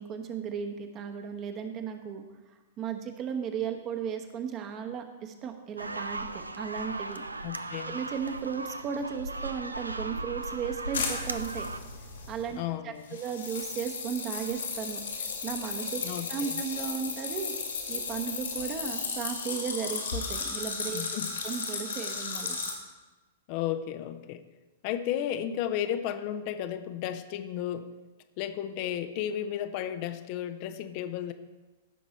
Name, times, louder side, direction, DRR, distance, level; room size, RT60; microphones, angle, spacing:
voice 1, 0.0-2.2 2.8-7.2 7.9-11.7 12.3-16.0 16.3-17.5 17.9-21.0 21.4-22.6, right 7 dB, 30° right, 5 dB, 1.1 m, -35 dB
sound 1, 5.8-11.8, right 2 dB, 80° right, 0.5 m, -37 dB
voice 2, 7.4-8.0 12.6-13.1 16.0-16.6 20.9-21.3 23.5-24.4 24.8-27.9 28.4-31.3, left 10 dB, 40° left, 9 dB, 0.6 m, -33 dB
sound 2, 10.9-12.5 13.1-22.7, left 5 dB, 70° left, 2.2 m, -35 dB
15.0 x 6.0 x 4.2 m, 1.2 s
figure-of-eight pair, 105°, 0 cm